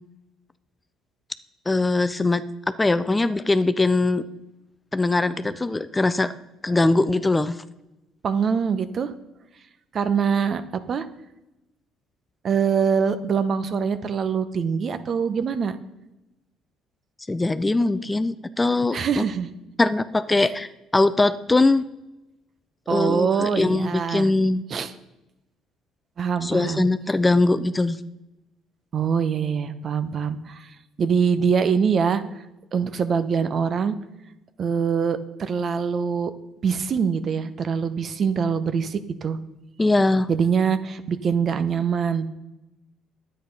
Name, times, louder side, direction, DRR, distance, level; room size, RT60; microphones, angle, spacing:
voice 1, 1.7-2.4 2.8-4.2 4.9-6.3 6.6-7.6 17.3-19.2 19.8-21.9 22.9-24.6 26.4-28.0 39.8-40.3, left 2 dB, 15° left, 13 dB, 0.5 m, -21 dB
voice 2, 8.2-9.1 9.9-11.1 12.4-15.8 18.9-19.5 22.9-24.3 24.7-24.9 26.2-26.9 28.9-30.7 31.0-32.2 32.7-34.0 34.6-36.3 36.6-39.4 40.3-42.3, right 6 dB, 50° right, 12 dB, 0.9 m, -24 dB
10.0 x 8.9 x 5.4 m, 0.97 s
supercardioid pair, 80°, 0 cm